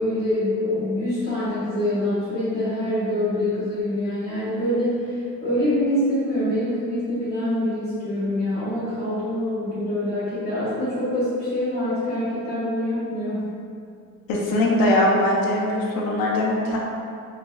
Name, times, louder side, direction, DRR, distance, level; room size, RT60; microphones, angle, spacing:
voice 1, 0.0-13.5, left 1 dB, 40° left, -11 dB, 1.5 m, -25 dB
voice 2, 14.3-16.8, left 1 dB, 70° left, -3 dB, 0.6 m, -21 dB
3.3 x 3.1 x 2.2 m, 2.4 s
cardioid pair, 160°, 36 cm